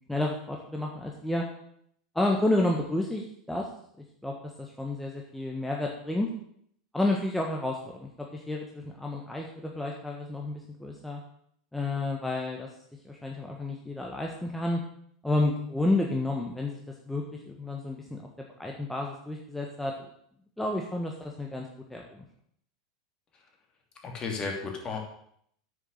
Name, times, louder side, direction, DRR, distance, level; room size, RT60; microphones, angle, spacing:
voice 1, 0.1-1.4 2.1-3.7 4.2-6.3 6.9-11.2 11.7-12.7 13.0-14.8 15.2-16.8 17.1-19.9 20.6-22.2, left 2 dB, 5° left, -1 dB, 1.4 m, -30 dB
voice 2, 24.0-25.0, left 4 dB, 30° left, 1 dB, 3.0 m, -34 dB
9.0 x 6.8 x 6.6 m, 0.68 s
hypercardioid pair, 90°, 3 cm